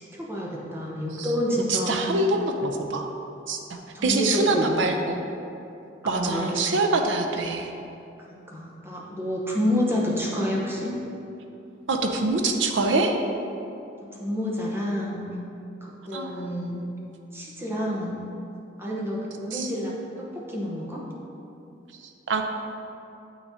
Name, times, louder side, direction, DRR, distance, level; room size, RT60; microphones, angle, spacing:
voice 1, 0.0-2.0 3.9-4.8 6.0-6.7 8.3-11.0 14.0-15.3 15.8-16.8 17.3-18.2 18.8-21.0, equal, 15° right, -4 dB, 0.9 m, -29 dB
voice 2, 1.7-3.1 3.5-5.2 6.0-7.7 11.9-13.2 16.1-16.3 19.5-19.7 22.3-22.4, right 2 dB, 85° right, 3 dB, 0.6 m, -25 dB
7.5 x 5.8 x 2.7 m, 2.8 s
head